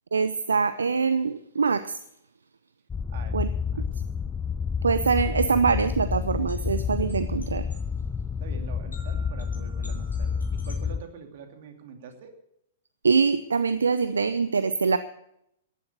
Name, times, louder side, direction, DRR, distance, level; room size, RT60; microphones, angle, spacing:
voice 1, 0.1-1.9 3.3-3.5 4.8-7.7 13.0-15.0, right 5 dB, 75° right, 14 dB, 0.6 m, -24 dB
sound 1, 2.9-11.0, left 6 dB, 15° left, 0.5 m, -29 dB
voice 2, 3.1-3.8 8.4-12.3, right 6 dB, 50° right, 5 dB, 2.6 m, -45 dB
sound 2, 4.3-10.8, equal, 85° left, 6.8 m, -52 dB
14.5 x 11.0 x 6.7 m, 0.77 s
figure-of-eight pair, 105°, 0 cm